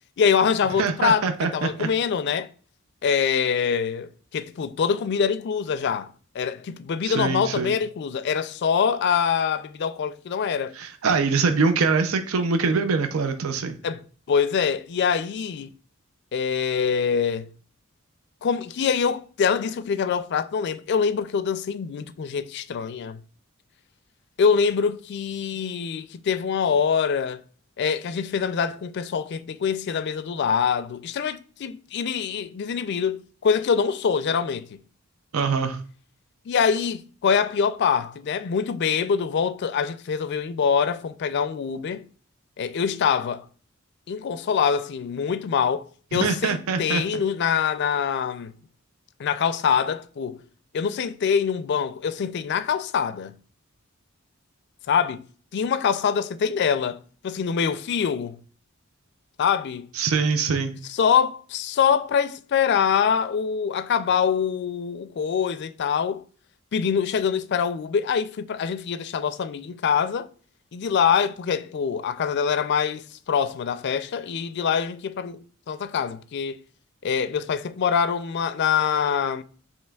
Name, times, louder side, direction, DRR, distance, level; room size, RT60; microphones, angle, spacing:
voice 1, 0.2-2.5 3.0-10.7 13.8-14.0 14.3-15.7 16.3-17.5 18.4-23.2 24.4-27.4 27.8-34.7 36.5-42.0 42.6-43.4 44.1-48.5 49.2-50.4 50.7-53.4 54.9-55.2 55.5-58.4 59.4-59.9 60.9-66.2 66.7-70.3 70.7-75.4 75.7-76.6 77.0-79.4, left 6 dB, 55° left, 0.4 m, -24 dB
voice 2, 0.8-1.9 7.0-7.7 10.7-13.8 35.3-35.8 46.1-47.0 59.9-60.7, right 4 dB, 85° right, 0.5 m, -24 dB
7.4 x 2.9 x 2.3 m
head